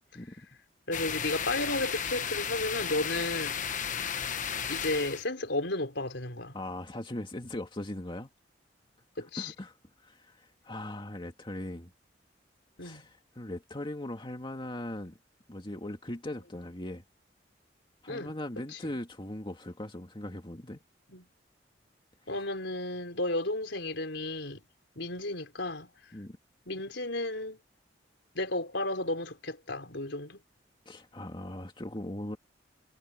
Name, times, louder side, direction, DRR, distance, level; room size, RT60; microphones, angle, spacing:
voice 1, 0.9-3.9 4.7-6.6 9.2-9.5 12.8-13.0 18.1-18.3 18.7-18.8 21.1-21.3 22.3-24.6 24.9-25.9 26.7-27.6 28.3-30.4, left 2 dB, 75° left, 4.5 m, -33 dB
sound 1, 0.9-5.2, left 7 dB, 45° left, 1.2 m, -34 dB
voice 2, 6.5-8.3 9.4-9.7 10.0-11.9 12.8-15.2 15.5-17.0 18.0-20.8 26.1-26.4 30.9-32.4, left 1 dB, 30° left, 2.2 m, -39 dB
head